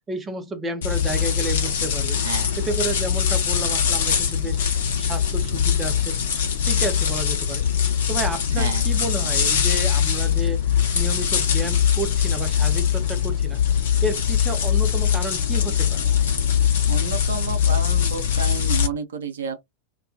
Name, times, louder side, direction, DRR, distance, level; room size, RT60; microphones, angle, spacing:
voice 1, 0.1-2.2 2.6-4.6 5.0-6.2 6.7-7.7 8.1-10.6 10.9-13.6 14.0-16.0, right 2 dB, 15° right, 0.6 m, -31 dB
sound 1, 0.8-18.9, left 8 dB, 60° left, 0.8 m, -22 dB
voice 2, 2.2-2.6 8.6-8.9 16.9-19.6, right 6 dB, 65° right, 0.6 m, -31 dB
2.2 x 2.2 x 2.4 m
figure-of-eight pair, 90°, 0 cm